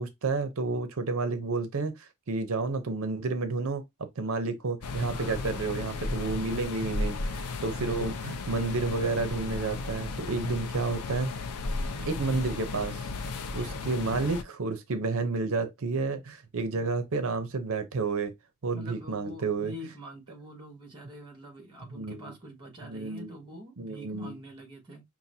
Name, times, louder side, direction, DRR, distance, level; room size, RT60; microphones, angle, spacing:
voice 1, 0.0-3.8 4.2-11.3 12.1-18.3 18.6-19.7 21.9-22.3 22.9-23.3 23.8-24.3, right 3 dB, 65° right, 0.6 m, -31 dB
sound 1, 4.8-14.4, left 3 dB, 80° left, 0.5 m, -34 dB
voice 2, 5.1-6.3 7.6-8.0 11.7-12.1 13.6-13.9 18.7-25.0, equal, 20° right, 1.6 m, -46 dB
5.6 x 2.3 x 2.7 m
head